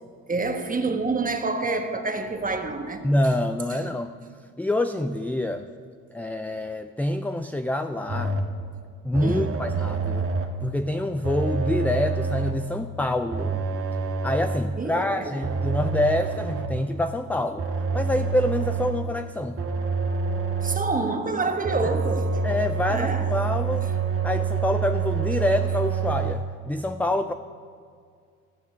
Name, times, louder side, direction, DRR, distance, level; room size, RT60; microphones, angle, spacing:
voice 1, 0.3-3.1 3.7-3.8 9.2-9.6 14.8-15.4 20.6-22.5 22.9-23.3, right 3 dB, 25° right, 6 dB, 1.3 m, -28 dB
voice 2, 3.0-4.1 4.6-5.7 6.1-8.4 9.0-10.3 10.6-13.6 14.2-17.6 17.9-19.6 21.8-21.9 22.4-23.9 24.2-27.3, left 1 dB, 5° left, 8 dB, 0.4 m, -26 dB
sound 1, 8.1-8.6 9.1-10.7 11.2-12.7 13.3-14.8 15.4-16.9 17.6-19.1 19.6-21.0 21.6-26.3, right 5 dB, 40° right, 1.4 m, -27 dB
13.0 x 7.2 x 6.8 m, 2.1 s
cardioid pair, 85°, 35 cm